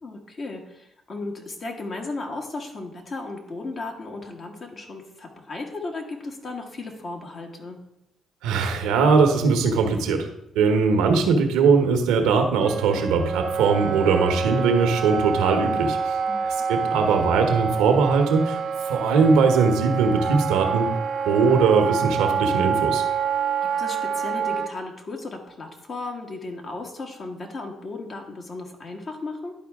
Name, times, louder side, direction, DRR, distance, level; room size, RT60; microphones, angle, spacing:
voice 1, 0.0-7.8 16.3-16.5 23.8-29.5, left 3 dB, 50° left, 2 dB, 1.6 m, -35 dB
voice 2, 8.4-10.3 10.5-16.2 16.4-18.6 18.9-20.9 21.2-23.0, right 5 dB, 85° right, 5 dB, 1.0 m, -20 dB
Wind instrument woodwind instrument, 12.6-24.7, right 6 dB, 60° right, 0.8 m, -27 dB
11.0 x 4.4 x 3.6 m, 0.80 s
supercardioid pair, 60°, 0 cm